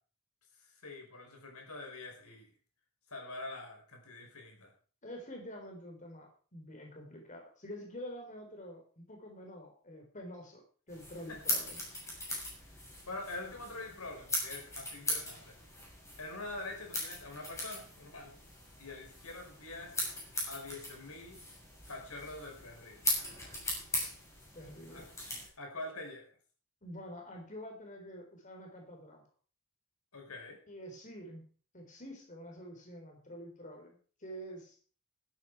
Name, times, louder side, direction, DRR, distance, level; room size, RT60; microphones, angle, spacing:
voice 1, 0.6-2.5 3.1-4.7 11.3-11.4 13.1-15.6 16.2-18.3 18.8-19.9 20.4-21.4 21.9-23.0 24.9-25.0 25.6-26.3 30.1-30.6, left 2 dB, 85° left, 3 dB, 4.9 m, -45 dB
voice 2, 5.0-10.6 10.9-11.8 24.0-24.1 24.5-25.1 26.8-29.2 30.7-31.5 31.7-34.8, equal, 35° left, 1 dB, 4.0 m, -47 dB
sound 1, 10.9-25.5, left 1 dB, 15° left, 6.7 m, -40 dB
13.0 x 12.0 x 4.8 m, 0.41 s
head